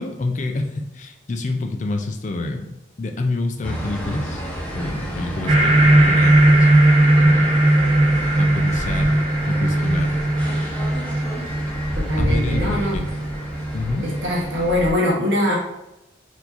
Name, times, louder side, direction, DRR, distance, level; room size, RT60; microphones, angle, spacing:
voice 1, 0.0-4.4 4.7-6.9 7.2-7.5 8.4-9.2 9.5-10.2 10.5-10.6 12.2-13.1 13.7-14.1, left 2 dB, 40° left, 4 dB, 0.4 m, -28 dB
sound 1, 3.6-14.9, equal, 5° left, 0.7 m, -30 dB
sound 2, 5.5-14.4, right 1 dB, 30° right, 0.7 m, -18 dB
voice 2, 11.9-13.0 14.0-15.5, left 1 dB, 85° right, -4 dB, 1.1 m, -22 dB
4.5 x 2.7 x 4.1 m, 0.91 s
head